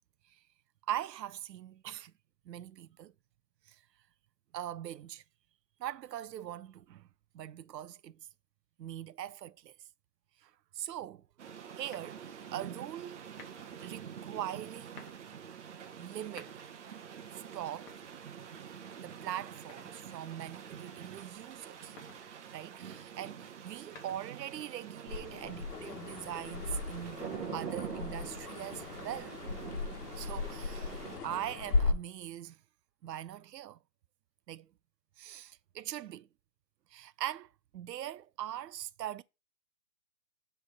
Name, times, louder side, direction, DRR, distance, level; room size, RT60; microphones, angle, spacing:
voice 1, 0.9-2.1 2.5-3.1 3.7-3.8 4.5-5.2 5.8-7.1 7.3-8.2 8.8-9.7 10.4-11.2 11.8-13.2 13.8-15.2 16.0-16.5 17.5-17.9 19.0-22.0 22.5-27.2 27.5-29.4 30.2-31.0 31.2-32.6 33.0-33.8 34.5-34.7 35.2-36.3 36.9-39.2, right 12 dB, 90° right, 0.6 m, -41 dB
sound 1, 11.4-31.2, right 8 dB, 45° right, 0.9 m, -46 dB
sound 2, 11.9-12.5 13.3-13.8 14.7-15.3 16.1-16.9 17.7-18.6 19.7-20.3 21.7-22.3 23.6-24.5, left 4 dB, 30° left, 1.3 m, -55 dB
sound 3, 25.1-31.9, left 3 dB, 70° left, 1.2 m, -36 dB
6.3 x 3.4 x 4.7 m
hypercardioid pair, 155°, 48 cm